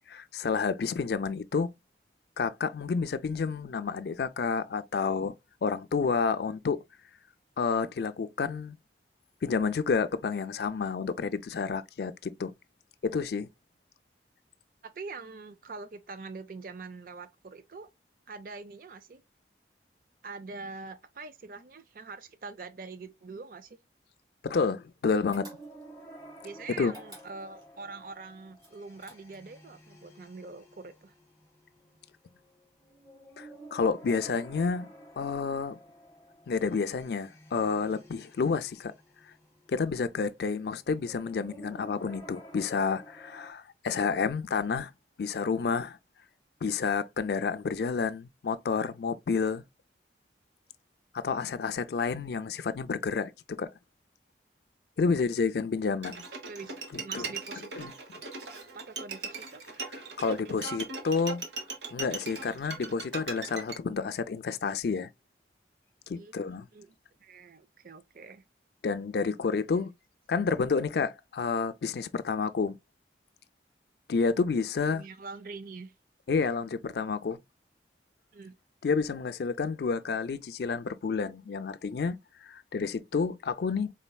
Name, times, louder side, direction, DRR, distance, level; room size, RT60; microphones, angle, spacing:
voice 1, 0.1-1.7 2.4-5.4 5.6-6.8 7.6-8.8 9.4-12.5 13.0-13.5 24.4-25.5 26.8-26.9 33.4-34.9 35.2-35.8 36.5-38.9 39.7-44.9 45.2-46.0 46.6-49.6 51.1-53.3 53.6-53.7 55.0-56.2 56.9-57.3 57.8-57.9 60.2-61.4 61.9-65.1 66.1-66.6 68.8-69.9 70.3-72.8 74.1-75.0 76.3-77.4 78.8-83.9, left 5 dB, 65° left, 0.4 m, -30 dB
voice 2, 14.8-17.9 18.3-19.2 20.2-23.8 26.4-31.1 56.3-57.9 58.7-59.6 66.1-66.3 66.7-67.0 67.2-68.4 74.8-75.9 78.3-78.6, right 4 dB, 50° right, 0.4 m, -44 dB
sound 1, 25.3-43.5, right 1 dB, 15° left, 0.9 m, -52 dB
sound 2, 25.3-26.0 26.8-27.7 28.6-29.6, equal, 20° right, 1.4 m, -51 dB
Bowed string instrument, 56.0-63.8, right 4 dB, 80° right, 1.1 m, -39 dB
4.2 x 3.7 x 2.2 m
head